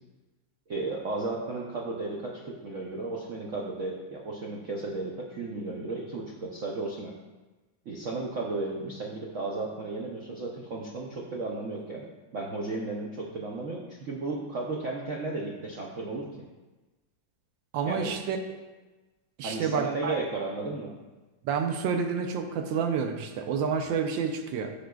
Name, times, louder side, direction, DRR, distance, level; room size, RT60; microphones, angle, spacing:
voice 1, 0.7-7.1 7.9-12.1 12.3-16.3 17.8-18.2 19.4-20.9, right 3 dB, 60° right, -2 dB, 0.8 m, -34 dB
voice 2, 17.7-18.4 19.4-20.2 21.4-24.7, right 6 dB, 80° right, 6 dB, 1.4 m, -29 dB
13.0 x 5.1 x 2.3 m, 1.2 s
omnidirectional pair, 2.0 m